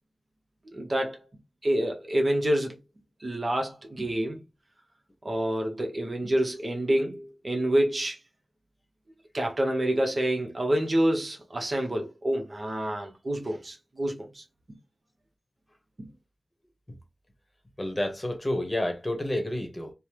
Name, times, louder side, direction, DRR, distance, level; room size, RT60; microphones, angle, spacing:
voice 1, 0.7-1.2 1.6-2.8 3.2-4.4 5.2-8.2 9.3-14.4 16.0-16.1, right 1 dB, 50° right, 0.7 m, -27 dB
voice 2, 17.8-19.9, left 1 dB, 25° left, 0.9 m, -29 dB
3.3 x 2.0 x 2.9 m
wide cardioid pair, 60°, 0 cm